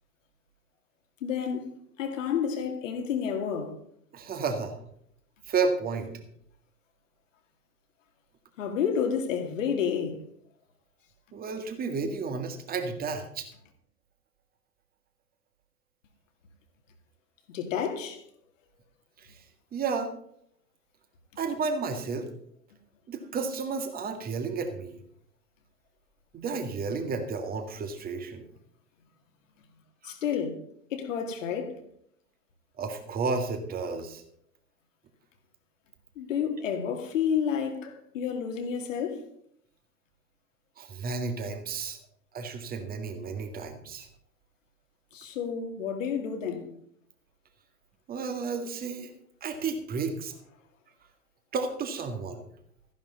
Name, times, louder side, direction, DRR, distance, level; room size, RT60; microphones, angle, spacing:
voice 1, 1.2-1.7 2.0-3.8 8.6-10.2 17.5-18.2 30.0-30.6 30.9-31.7 36.2-39.2 45.1-46.7, left 7 dB, 55° left, 2.5 m, -30 dB
voice 2, 4.1-4.7 5.5-6.1 11.3-13.5 19.2-19.4 19.7-20.1 21.4-22.3 23.1-25.0 26.3-28.5 30.0-30.1 32.8-34.2 40.8-42.0 42.3-44.1 48.1-49.1 49.4-50.3 51.5-52.4, right 4 dB, 20° right, 1.9 m, -32 dB
14.0 x 10.5 x 4.0 m
figure-of-eight pair, 100°, 46 cm